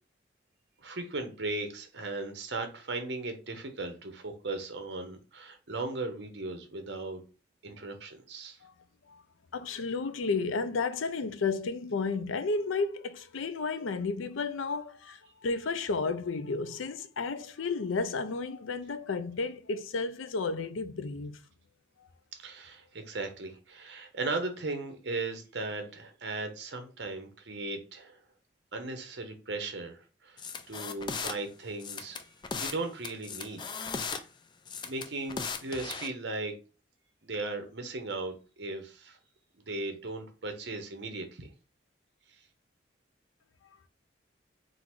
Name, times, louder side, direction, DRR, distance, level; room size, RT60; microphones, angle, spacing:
voice 1, 0.8-7.2 7.6-8.6 22.4-28.2 28.7-30.4 30.7-32.2 32.6-33.7 34.8-36.5 37.2-39.2 39.7-41.5, right 3 dB, 60° right, 0.9 m, -37 dB
voice 2, 9.5-21.4, left 4 dB, 85° left, 0.5 m, -32 dB
sound 1, 30.4-31.3 31.8-32.8 33.0-34.2 34.7-36.1, left 5 dB, 25° left, 0.3 m, -37 dB
3.8 x 2.6 x 4.5 m
head